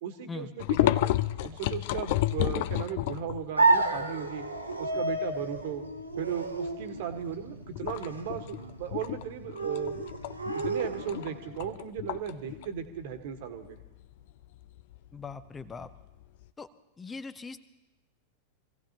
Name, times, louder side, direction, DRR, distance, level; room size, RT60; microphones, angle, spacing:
voice 1, 0.0-4.4 4.8-5.8 6.2-9.9 10.5-13.8, right 8 dB, 50° right, 7 dB, 1.5 m, -36 dB
sound 1, 0.6-3.5 4.0-4.1 4.4-5.6 6.0-6.3 6.7-7.2 7.7-16.4, left 15 dB, 50° left, 0.5 m, -31 dB
sound 2, 3.6-11.5, right 3 dB, 85° right, 1.2 m, -31 dB
voice 2, 15.1-15.9 16.6-16.7 17.0-17.6, left 4 dB, 15° left, 13 dB, 0.7 m, -40 dB
25.5 x 16.5 x 3.0 m, 1.0 s
figure-of-eight pair, 90°, 0 cm